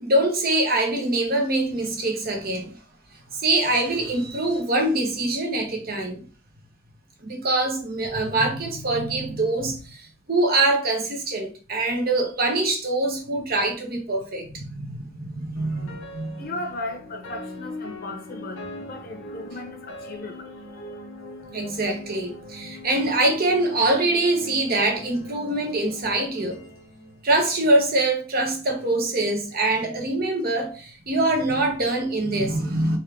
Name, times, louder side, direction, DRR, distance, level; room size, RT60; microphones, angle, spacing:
voice 1, 0.0-2.7 3.3-6.2 7.2-16.5 21.5-26.6 27.2-33.0, right 2 dB, 50° right, 1.1 m, -24 dB
sound 1, 15.6-27.8, left 1 dB, 85° left, 1.0 m, -41 dB
voice 2, 16.4-20.6, left 2 dB, 50° left, 0.9 m, -36 dB
4.2 x 3.6 x 3.3 m
head